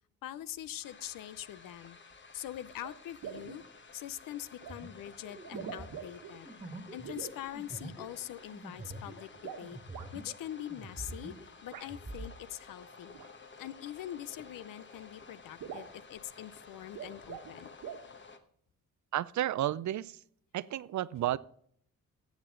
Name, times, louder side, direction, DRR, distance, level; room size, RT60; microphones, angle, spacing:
voice 1, 0.2-2.0 2.3-3.6 3.9-6.5 6.9-9.8 10.1-11.4 11.6-13.2 13.6-17.7, left 12 dB, 85° left, 17 dB, 0.6 m, -43 dB
sound 1, 0.8-18.4, left 4 dB, 35° left, 1.2 m, -54 dB
sound 2, 2.1-2.2 2.8-2.9 3.2-3.6 4.6-4.8 5.4-6.3 7.0-7.4 9.3-10.1 11.7-11.9 13.1-13.3 14.5-14.6 14.9-15.0 15.3-15.4 15.6-16.0 16.8-17.5 17.8-18.1, right 7 dB, 85° right, 1.6 m, -44 dB
sound 3, 4.7-10.4 10.7-12.3, right 2 dB, 20° right, 1.7 m, -46 dB
voice 2, 19.1-20.2 20.5-21.4, right 13 dB, 60° right, 20 dB, 0.5 m, -32 dB
14.5 x 8.2 x 3.8 m, 0.64 s
cardioid pair, 95°, 32 cm